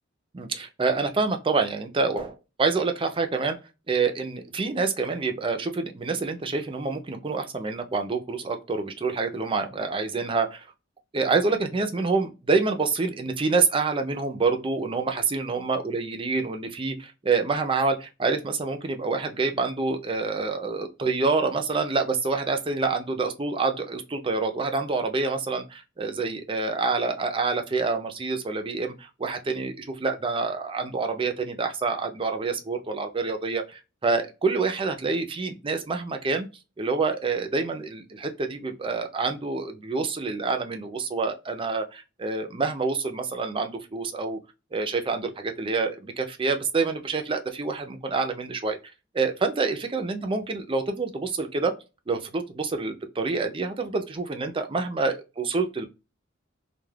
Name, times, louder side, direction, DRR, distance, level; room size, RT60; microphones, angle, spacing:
voice 1, 0.3-3.6 3.9-10.7 11.1-36.5 36.8-44.4 44.7-48.8 49.1-51.7 52.1-55.8, right 4 dB, 25° right, 0.5 m, -27 dB
2.3 x 2.2 x 3.2 m
head